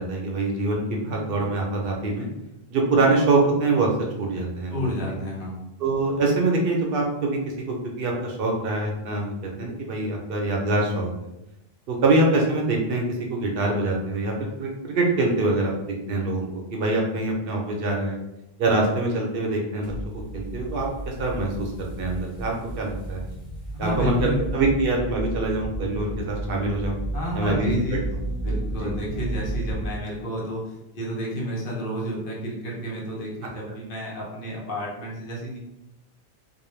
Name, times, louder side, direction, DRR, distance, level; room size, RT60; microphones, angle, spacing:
voice 1, 0.0-2.3 2.7-3.9 4.2-4.9 5.8-7.4 7.7-9.3 9.6-11.1 11.9-14.3 14.6-15.7 16.1-18.2 18.6-23.2 23.8-27.0 27.3-28.0 28.8-28.9, right 2 dB, 70° right, 0 dB, 0.8 m, -24 dB
voice 2, 4.7-5.6 23.7-24.5 27.1-28.1 28.4-35.6, equal, 60° left, -4 dB, 0.9 m, -30 dB
sound 1, 19.8-29.9, right 1 dB, 20° left, 1.1 m, -32 dB
2.3 x 2.1 x 3.1 m, 0.91 s
omnidirectional pair, 1.0 m